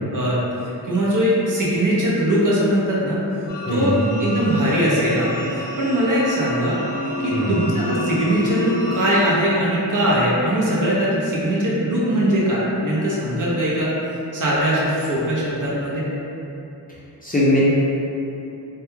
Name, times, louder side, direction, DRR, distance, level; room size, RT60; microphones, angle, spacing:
voice 1, 0.1-3.2 3.7-6.9 7.2-13.9 14.3-16.0, equal, 50° right, -7 dB, 0.6 m, -21 dB
sound 1, 3.5-9.4, left 1 dB, 85° left, 0.7 m, -29 dB
voice 2, 3.7-4.3 7.3-7.6 17.2-17.6, left 1 dB, 20° left, -9 dB, 0.4 m, -21 dB
2.2 x 2.1 x 3.0 m, 2.9 s
wide cardioid pair, 95°, 41 cm